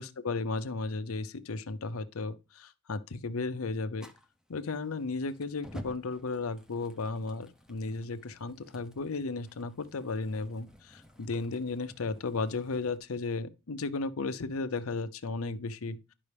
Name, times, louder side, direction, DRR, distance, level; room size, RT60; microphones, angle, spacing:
voice 1, 0.0-4.1 4.5-16.1, left 3 dB, 85° left, 0.7 m, -34 dB
Fire, 4.0-13.0, equal, 5° right, 0.7 m, -52 dB
11.0 x 5.4 x 3.4 m
head